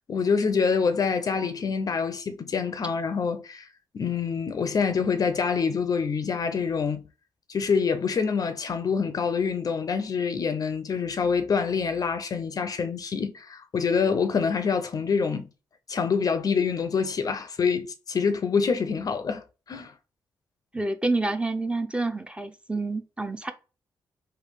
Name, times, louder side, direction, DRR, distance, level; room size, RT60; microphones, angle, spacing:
voice 1, 0.0-3.7 3.9-7.1 7.5-15.5 15.9-19.9, left 5 dB, 50° left, 0.4 m, -26 dB
voice 2, 20.7-23.5, right 2 dB, 15° right, 0.5 m, -28 dB
3.1 x 2.3 x 3.3 m
supercardioid pair, 60°, 8 cm